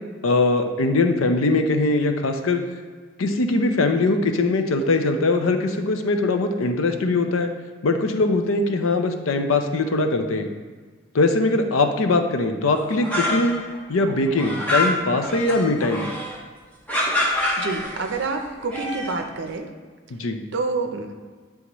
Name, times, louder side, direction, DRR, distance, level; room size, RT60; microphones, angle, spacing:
voice 1, 0.2-2.6 3.2-7.5 7.8-10.5 11.1-13.5 13.9-16.1 20.1-20.4, left 2 dB, 85° left, 6 dB, 0.6 m, -21 dB
sound 1, 12.7-13.8 14.0-16.4 16.9-18.2 18.6-19.2, left 1 dB, 5° left, 0.7 m, -26 dB
voice 2, 17.6-19.7 20.1-20.2 20.5-21.1, right 3 dB, 60° right, 4 dB, 0.6 m, -28 dB
9.4 x 3.5 x 3.0 m, 1.5 s
head